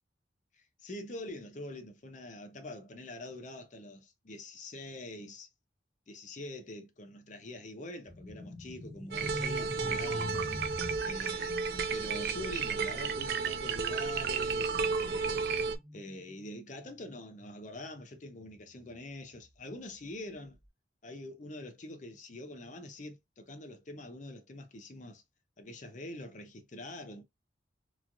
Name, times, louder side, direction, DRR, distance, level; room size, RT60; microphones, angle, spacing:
voice 1, 0.5-5.5 6.1-10.5 11.0-15.5 15.9-20.6 21.0-25.2 25.6-27.2, left 1 dB, 45° left, 0.6 m, -45 dB
sound 1, 8.1-18.0 18.3-18.6 19.3-20.3, left 1 dB, 5° left, 1.0 m, -45 dB
sound 2, 9.1-15.8, right 5 dB, 60° right, 0.4 m, -32 dB
3.0 x 2.4 x 2.6 m
head